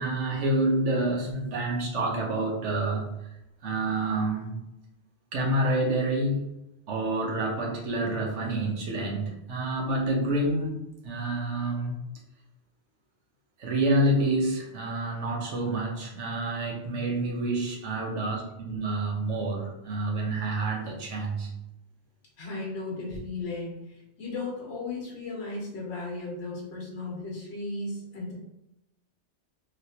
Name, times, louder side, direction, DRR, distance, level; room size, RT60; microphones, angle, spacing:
voice 1, 0.0-3.1 3.6-4.6 5.3-6.5 6.9-12.0 13.6-21.5, right 1 dB, 85° right, -1 dB, 1.2 m, -28 dB
voice 2, 22.4-28.3, left 3 dB, 65° left, -3 dB, 1.3 m, -35 dB
3.2 x 3.0 x 2.8 m, 0.89 s
omnidirectional pair, 1.2 m